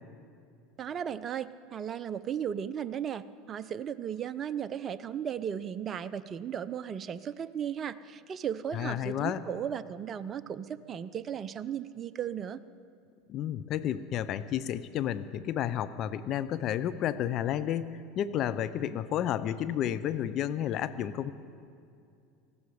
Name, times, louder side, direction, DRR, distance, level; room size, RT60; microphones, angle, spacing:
voice 1, 0.8-12.6, right 8 dB, 35° right, 14 dB, 0.6 m, -36 dB
voice 2, 8.7-9.4 13.3-21.3, left 10 dB, 50° left, 13 dB, 0.7 m, -31 dB
19.5 x 15.0 x 5.0 m, 2.5 s
hypercardioid pair, 80°, 0 cm